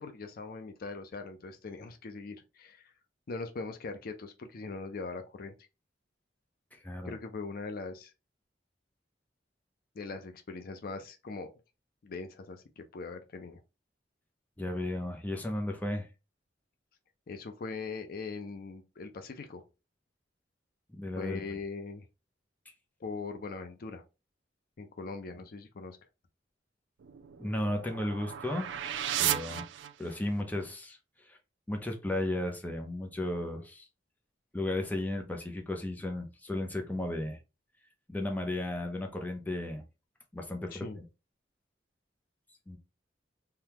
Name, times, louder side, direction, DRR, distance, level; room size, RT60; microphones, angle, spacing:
voice 1, 0.0-2.9 3.3-5.5 7.0-8.1 10.0-11.5 12.0-13.6 17.3-19.6 21.2-22.0 23.0-24.0 24.8-26.0 40.7-41.0, left 4 dB, 55° left, 0.5 m, -41 dB
voice 2, 6.7-7.1 14.6-16.1 21.0-21.4 25.3-25.4 27.4-28.8 29.2-29.7 30.0-31.0 31.3-31.4 31.7-33.8 34.5-37.4 38.1-39.8 40.3-40.9 42.7-42.8, left 1 dB, 10° left, 0.6 m, -34 dB
sound 1, 27.0-30.4, right 11 dB, 80° right, 0.4 m, -35 dB
3.4 x 2.3 x 2.8 m
head